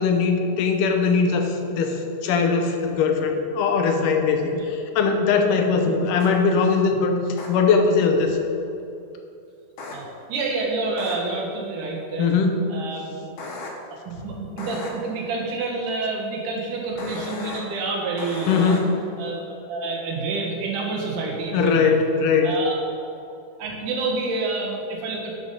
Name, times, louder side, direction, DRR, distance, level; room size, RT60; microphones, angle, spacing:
voice 1, 0.0-4.5 5.0-7.1 7.5-8.4 12.2-12.6 18.5-18.9 21.5-22.5, left 5 dB, 90° left, 4 dB, 2.4 m, -20 dB
sound 1, 6.2-6.3 7.4-7.5 9.8-10.0 11.0-11.1 13.4-13.7 14.6-14.9 17.0-17.6 18.2-18.8, left 3 dB, 70° left, 2.7 m, -35 dB
voice 2, 9.9-12.3 12.7-13.2 14.0-18.8 19.2-22.0 22.4-22.8 23.6-25.4, right 3 dB, 80° right, -1 dB, 2.9 m, -28 dB
11.0 x 5.5 x 5.5 m, 2.6 s
omnidirectional pair, 3.7 m